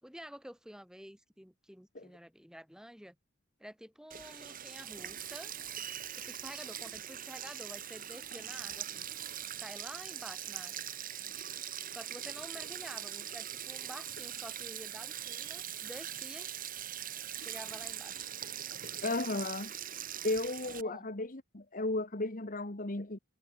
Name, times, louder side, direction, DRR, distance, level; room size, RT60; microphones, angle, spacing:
voice 1, 0.0-3.2 3.6-5.5 6.1-10.8 11.9-16.6 17.4-18.3 20.6-21.1, equal, 5° right, 6.7 m, -50 dB
Sink (filling or washing), 4.1-20.8, right 10 dB, 40° right, 3.8 m, -42 dB
voice 2, 19.0-19.7 20.2-23.2, left 2 dB, 40° left, 1.6 m, -34 dB
head